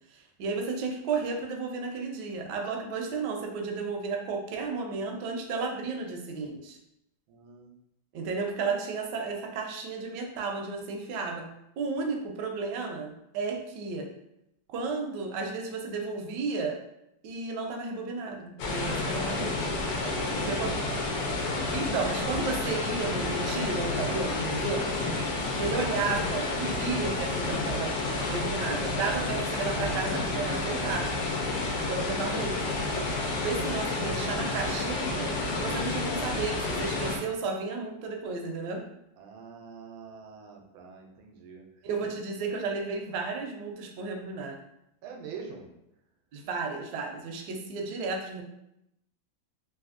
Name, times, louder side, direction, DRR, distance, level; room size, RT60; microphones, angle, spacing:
voice 1, 0.1-6.8 8.1-11.5 11.8-14.1 14.7-16.8 17.2-19.7 20.4-20.8 21.7-24.8 25.6-27.9 28.3-31.1 31.9-32.7 33.4-38.8 41.8-44.6 46.3-48.4, right 4 dB, 75° right, 2 dB, 1.1 m, -33 dB
voice 2, 7.3-7.7 20.0-21.0 25.2-25.8 39.2-41.6 45.0-45.7, right 5 dB, 90° right, 1 dB, 1.4 m, -45 dB
sound 1, 18.6-37.2, left 2 dB, 75° left, 1.3 m, -30 dB
3.4 x 2.6 x 2.5 m, 0.82 s
omnidirectional pair, 2.1 m